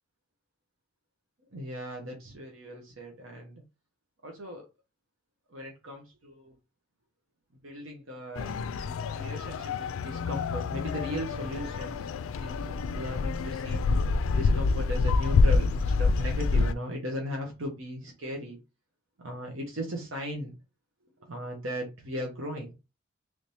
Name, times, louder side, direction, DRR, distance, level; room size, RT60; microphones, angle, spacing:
voice 1, 1.5-3.6 4.2-4.7 5.5-6.5 7.6-8.6 9.1-12.0 12.4-13.8 14.3-18.6 19.2-20.5 21.2-22.7, equal, 80° right, 1 dB, 0.9 m, -37 dB
sound 1, 8.4-16.7, left 4 dB, 85° left, 0.3 m, -27 dB
3.2 x 2.8 x 3.3 m, 0.27 s
head